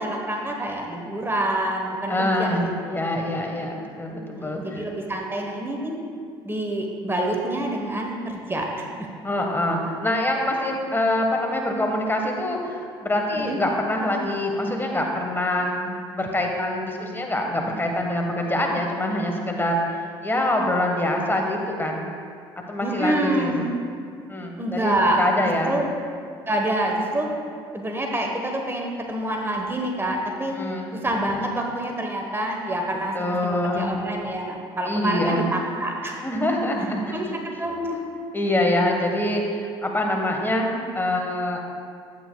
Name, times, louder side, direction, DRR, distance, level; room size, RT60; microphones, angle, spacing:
voice 1, 0.0-2.9 4.3-6.0 6.4-9.1 13.4-13.6 22.8-23.7 24.6-25.2 25.6-25.9 26.5-27.3 27.7-30.5 31.0-36.2 37.1-37.3 37.6-38.0, right 1 dB, 20° right, 1 dB, 1.1 m, -27 dB
voice 2, 2.1-4.9 9.2-22.1 22.7-23.6 24.3-25.8 30.5-30.9 33.1-34.0 34.9-35.5 36.2-37.4 38.3-41.6, left 1 dB, 15° left, 1 dB, 1.3 m, -25 dB
11.0 x 8.5 x 2.3 m, 2.3 s
hypercardioid pair, 60°, 13 cm